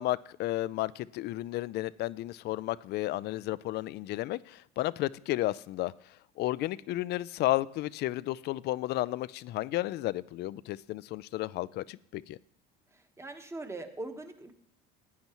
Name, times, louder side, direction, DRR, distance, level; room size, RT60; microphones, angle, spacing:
voice 1, 0.0-5.9 6.4-12.4, left 16 dB, 60° left, 0.4 m, -32 dB
voice 2, 12.9-14.5, right 2 dB, 15° right, 1.2 m, -41 dB
15.0 x 9.4 x 3.0 m
supercardioid pair, 90°, 19 cm